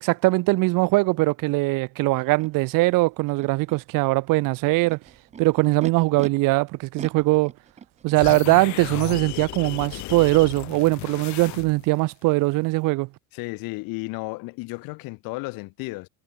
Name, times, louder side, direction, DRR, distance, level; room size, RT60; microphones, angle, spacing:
voice 1, 0.0-5.0 5.4-7.5 8.0-13.1, right 22 dB, 70° right, 1.3 m, -21 dB
Animal, 2.4-2.5 3.3-3.8 4.6-6.3 7.0-8.2, right 7 dB, 20° right, 0.8 m, -40 dB
sound 1, 8.1-12.0, left 19 dB, 55° left, 0.8 m, -35 dB
voice 2, 13.3-16.1, left 25 dB, 80° left, 6.8 m, -33 dB
cardioid pair, 160°, 34 cm